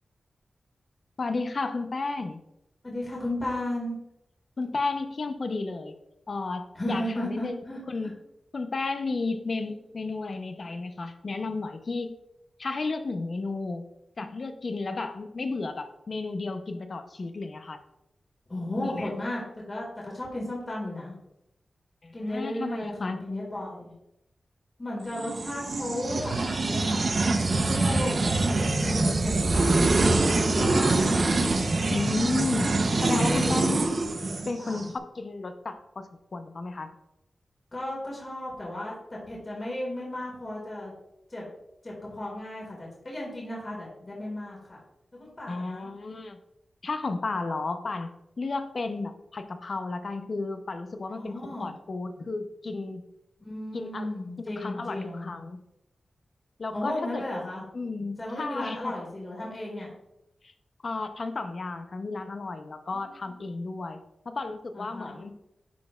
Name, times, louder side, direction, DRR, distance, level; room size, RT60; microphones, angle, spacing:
voice 1, 1.2-2.4 4.6-5.9 6.3-7.5 7.9-8.1 8.5-12.2 12.6-13.8 14.2-17.8 18.8-19.1 22.0-23.2 31.9-32.7 33.0-33.8 34.5-36.9 45.5-46.4 46.8-48.1 48.4-51.3 51.6-53.0 53.7-54.1 54.5-55.6 56.6-57.2 57.7-58.9 60.4-60.5 60.8-64.0 64.3-65.3, left 3 dB, 55° left, 8 dB, 0.6 m, -33 dB
voice 2, 2.8-4.0 6.8-7.8 9.6-9.7 10.7-10.8 18.5-21.1 22.1-23.9 24.8-27.1 27.5-31.2 33.0-33.8 34.6-34.9 37.7-38.9 39.2-40.9 41.3-41.5 41.8-44.8 45.1-45.9 51.1-51.7 53.4-55.3 56.7-57.6 58.2-59.9 62.9-63.4 64.7-65.2, left 1 dB, 35° left, -3 dB, 1.9 m, -35 dB
sound 1, 25.1-34.8, right 2 dB, 55° right, 0.6 m, -25 dB
10.5 x 4.2 x 2.3 m, 0.84 s
wide cardioid pair, 90°, 0 cm